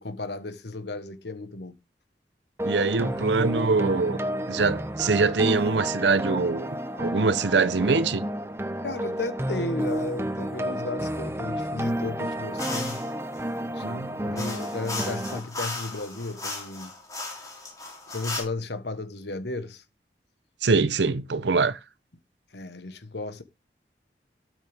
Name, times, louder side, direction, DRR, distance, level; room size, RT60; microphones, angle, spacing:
voice 1, 0.0-1.7 8.8-13.0 13.6-16.9 18.1-19.8 22.5-23.4, left 2 dB, 80° left, 1.2 m, -34 dB
sound 1, 2.6-15.4, right 1 dB, 15° right, 0.9 m, -31 dB
voice 2, 2.6-4.2 4.5-8.3 13.8-14.4 20.6-21.8, right 4 dB, 85° right, 0.7 m, -24 dB
sound 2, 12.6-13.1 14.4-18.4, left 3 dB, 20° left, 3.4 m, -36 dB
12.5 x 6.4 x 3.5 m
head